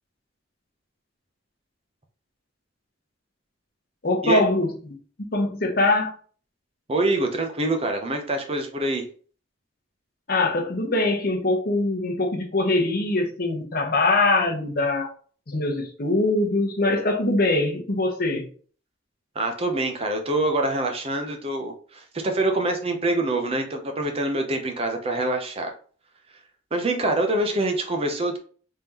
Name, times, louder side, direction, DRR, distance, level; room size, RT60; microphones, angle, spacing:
voice 1, 4.0-4.7 5.3-6.1 10.3-15.1 15.5-18.5, left 2 dB, 50° left, 1 dB, 0.9 m, -22 dB
voice 2, 6.9-9.1 19.4-25.7 26.7-28.4, right 2 dB, 30° right, 4 dB, 0.6 m, -25 dB
3.6 x 3.4 x 2.8 m, 0.43 s
head